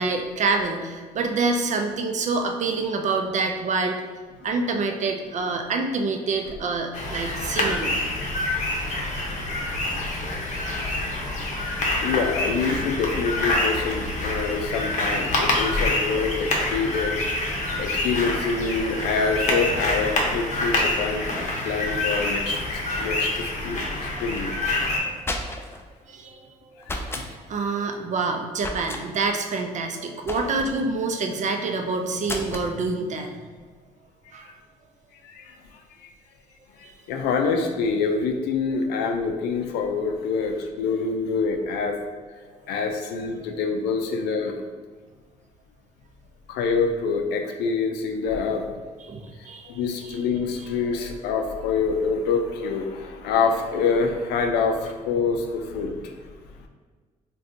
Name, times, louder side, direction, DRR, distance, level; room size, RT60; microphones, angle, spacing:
voice 1, 0.0-4.0 4.4-7.9 11.1-11.4 24.1-24.2 25.1-25.2 25.5-25.6 26.1-26.4 27.1-33.3 34.3-34.5 36.8-36.9 44.1-44.2 49.1-49.7, right 3 dB, 50° right, 4 dB, 0.4 m, -27 dB
sound 1, 6.9-25.0, left 2 dB, 45° left, 0.7 m, -26 dB
voice 2, 12.0-17.1 17.8-24.5 35.2-35.5 36.0-36.1 36.8-42.0 42.7-44.5 46.5-48.7 49.7-56.0, left 5 dB, 90° left, 4 dB, 0.4 m, -26 dB
sound 2, 25.2-25.8 26.8-27.3 28.6-29.0 30.3-30.8 32.2-32.7, left 1 dB, 15° left, 0.3 m, -32 dB
2.5 x 2.3 x 3.7 m, 1.4 s
supercardioid pair, 70°, 17 cm